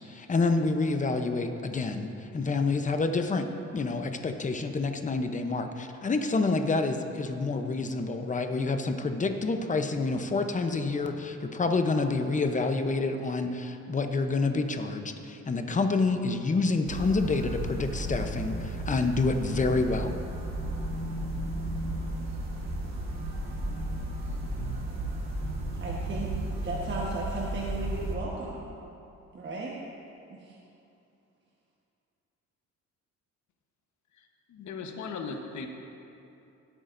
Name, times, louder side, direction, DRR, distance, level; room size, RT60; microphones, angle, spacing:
voice 1, 0.1-3.5 3.7-20.2, left 3 dB, 25° left, 7 dB, 0.8 m, -28 dB
sound 1, 16.9-28.1, right 1 dB, 60° right, 2.0 m, -34 dB
voice 2, 25.8-26.3 26.6-28.7 29.3-29.8 30.3-30.6, right 3 dB, 40° right, -4 dB, 1.3 m, -35 dB
voice 3, 34.1-35.7, left 4 dB, 70° left, 4 dB, 1.2 m, -38 dB
17.5 x 8.5 x 2.6 m, 2.8 s
cardioid pair, 90°, 30 cm